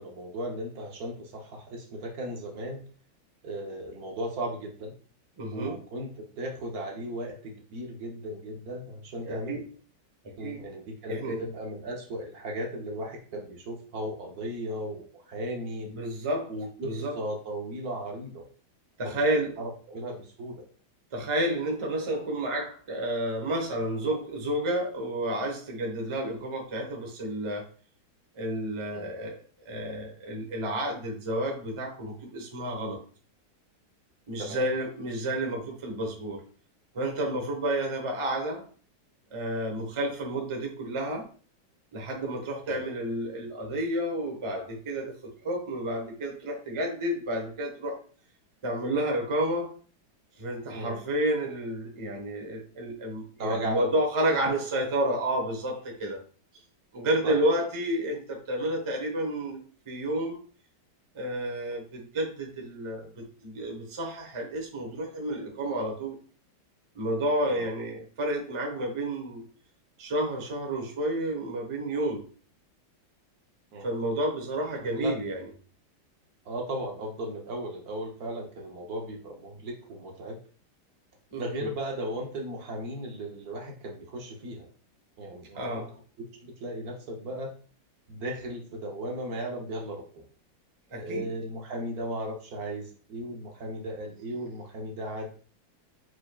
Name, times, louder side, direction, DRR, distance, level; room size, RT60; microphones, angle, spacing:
voice 1, 0.0-2.8 3.4-4.9 5.5-9.6 10.4-15.9 16.5-18.5 19.0-19.1 19.6-20.6 28.9-29.1 34.4-34.7 42.6-42.8 50.7-51.0 53.4-53.9 57.2-57.6 67.4-67.7 73.7-73.9 74.9-75.2 76.4-80.4 81.4-84.7 85.2-85.6 86.2-87.5 88.1-90.3 91.0-95.3, right 1 dB, 60° right, 1 dB, 1.1 m, -36 dB
voice 2, 5.4-5.8 9.2-9.6 10.2-10.6 11.1-11.4 15.9-16.5 16.8-17.2 19.0-19.6 21.1-27.7 28.3-29.4 29.6-33.0 34.3-36.4 36.9-38.7 39.3-41.3 41.9-48.0 48.6-49.7 50.4-56.2 56.9-59.6 59.9-60.4 61.1-66.2 66.9-69.4 70.0-72.2 73.8-75.5 81.3-81.7 85.5-85.9 90.9-91.3, right 1 dB, 35° right, 1 dB, 0.5 m, -30 dB
4.5 x 4.5 x 2.3 m, 0.40 s
omnidirectional pair, 2.1 m